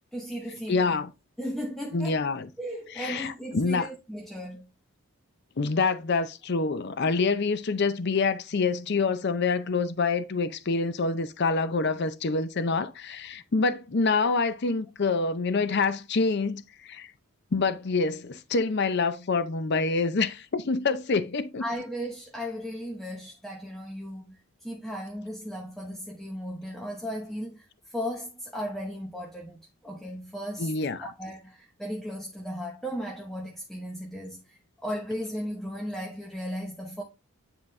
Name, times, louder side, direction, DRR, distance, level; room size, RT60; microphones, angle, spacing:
voice 1, 0.1-1.0 1.4-2.2 2.6-4.7 21.6-30.7 31.0-37.0, equal, ahead, 0.9 m, -36 dB
voice 2, 0.7-1.1 1.9-2.5 2.9-3.9 5.6-17.1 17.5-21.6 30.6-31.0, left 4 dB, 50° left, 0.5 m, -26 dB
9.7 x 4.0 x 3.2 m
head